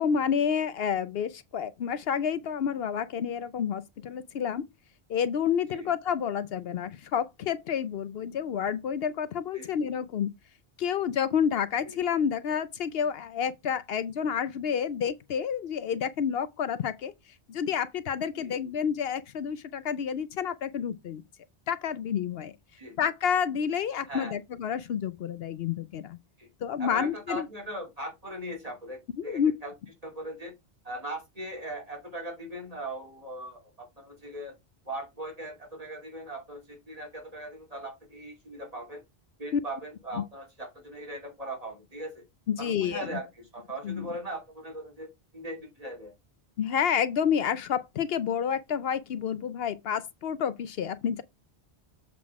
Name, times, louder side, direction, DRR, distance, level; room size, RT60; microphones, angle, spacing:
voice 1, 0.0-4.6 5.1-10.3 10.8-17.1 17.5-21.2 21.7-22.5 23.0-26.2 26.6-27.5 29.2-29.5 39.5-39.6 42.5-43.2 43.8-44.1 46.6-51.2, left 7 dB, 70° left, 0.8 m, -29 dB
voice 2, 24.1-24.4 26.4-26.5 26.8-29.7 30.0-30.5 30.8-34.6 34.9-39.0 39.4-42.2 42.6-45.1 45.3-46.1, right 1 dB, 35° right, 2.9 m, -39 dB
7.6 x 4.1 x 4.7 m
omnidirectional pair, 1.1 m